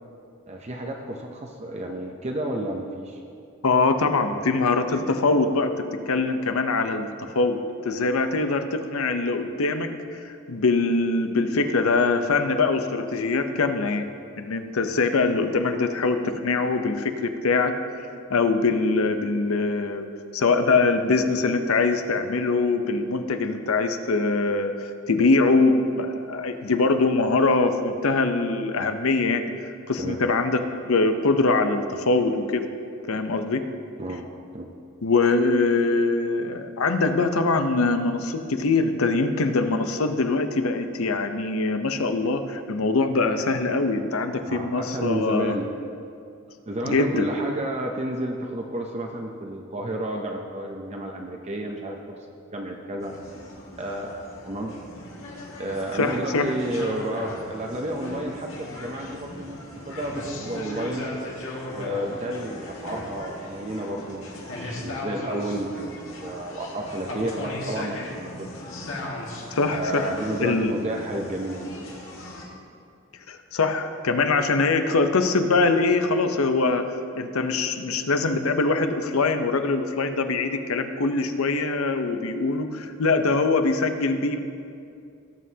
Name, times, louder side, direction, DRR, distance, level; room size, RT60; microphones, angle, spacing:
voice 1, 0.5-3.2 30.0-30.2 34.0-34.2 34.5-34.7 44.5-45.7 46.7-52.2 52.5-53.1 53.8-54.7 55.6-59.6 59.9-61.1 61.7-65.9 66.2-68.5 69.7-71.7, right 1 dB, 30° right, 1 dB, 0.6 m, -31 dB
voice 2, 3.6-5.7 6.1-7.1 7.3-7.6 7.8-14.1 14.4-17.7 18.3-20.1 20.3-29.5 29.9-32.7 33.1-33.6 35.0-45.6 46.8-47.3 55.9-56.5 69.6-70.7 73.3-84.4, left 3 dB, 90° left, 8 dB, 0.7 m, -23 dB
sound 1, 53.0-72.4, left 1 dB, 70° left, 1.9 m, -37 dB
18.5 x 7.5 x 2.8 m, 2.5 s
head